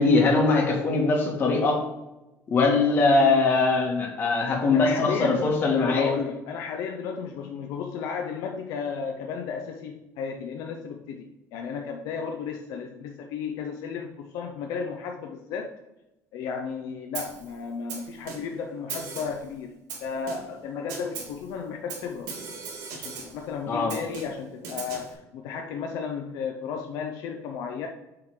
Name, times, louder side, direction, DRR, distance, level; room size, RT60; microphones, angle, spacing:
voice 1, 0.0-1.8 2.5-6.1 23.7-23.9, left 3 dB, 35° left, 0 dB, 1.8 m, -21 dB
voice 2, 4.7-15.7 16.3-19.7 20.0-22.3 22.9-27.9, left 6 dB, 70° left, 3 dB, 0.7 m, -34 dB
Snare drum, 17.1-17.5 17.9-18.6 18.9-19.5 19.9-20.6 20.9-21.4 21.9-23.4 23.9-25.1, right 5 dB, 80° right, 2.6 m, -38 dB
7.6 x 3.9 x 4.9 m, 0.98 s
cardioid pair, 160°, 6 cm